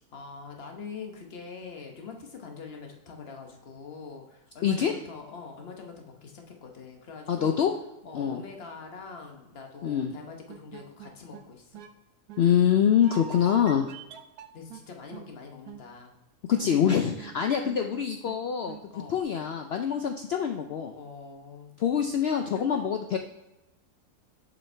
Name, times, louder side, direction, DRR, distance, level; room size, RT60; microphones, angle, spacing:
voice 1, 0.1-7.6 8.0-11.8 13.4-13.9 14.5-16.1 18.9-19.2 20.9-21.7 22.4-22.6, left 5 dB, 45° left, 3 dB, 1.2 m, -44 dB
voice 2, 4.6-4.9 7.3-7.7 8.1-8.4 9.8-10.1 12.4-13.9 16.5-18.8 19.1-20.9 21.8-23.2, left 8 dB, 85° left, 4 dB, 0.5 m, -25 dB
sound 1, 10.5-11.4 11.7-11.9 12.3-12.4 13.0-14.8 15.1-15.3 15.7-15.8 16.5-18.4 18.7-18.8, right 11 dB, 80° right, 1.1 m, -43 dB
7.0 x 5.4 x 3.3 m, 0.95 s
omnidirectional pair, 1.6 m